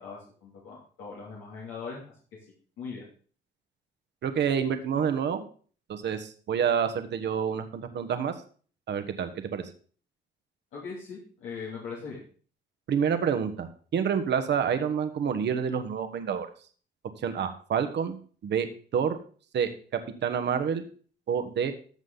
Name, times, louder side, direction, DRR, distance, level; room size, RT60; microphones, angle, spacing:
voice 1, 0.0-2.1 2.8-3.1 10.7-12.2, left 5 dB, 90° left, -5 dB, 2.8 m, -40 dB
voice 2, 4.2-5.4 5.9-8.3 8.9-9.6 12.9-16.5 17.2-18.2 18.4-19.2 19.5-19.7 20.2-20.8 21.3-21.7, right 7 dB, 60° right, 8 dB, 1.3 m, -28 dB
13.5 x 6.3 x 4.0 m, 0.42 s
cardioid pair, 90°, 20 cm